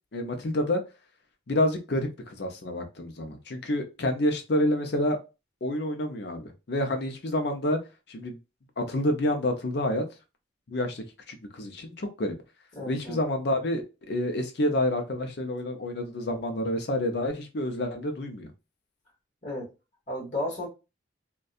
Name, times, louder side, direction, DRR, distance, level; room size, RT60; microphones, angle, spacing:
voice 1, 0.1-0.8 1.5-5.2 5.6-7.8 8.1-8.4 8.8-10.0 10.7-12.4 12.9-18.5, left 1 dB, 55° left, 0.6 m, -28 dB
voice 2, 12.7-13.2 19.4-19.7 20.1-20.7, left 1 dB, 40° left, 1.2 m, -33 dB
2.6 x 2.2 x 2.4 m
head